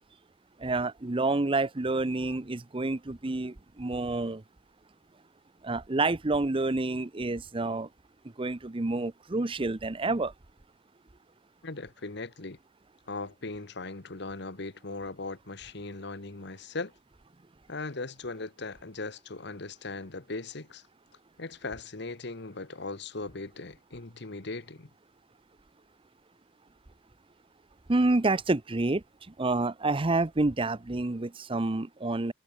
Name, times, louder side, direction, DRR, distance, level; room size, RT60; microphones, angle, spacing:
voice 1, 0.6-4.4 5.6-7.9 8.4-10.3 27.9-29.0 29.4-32.3, right 2 dB, 30° right, 0.7 m, -28 dB
voice 2, 11.6-12.6 13.1-16.9 17.7-20.8 21.4-24.9, left 3 dB, 60° left, 1.5 m, -39 dB
head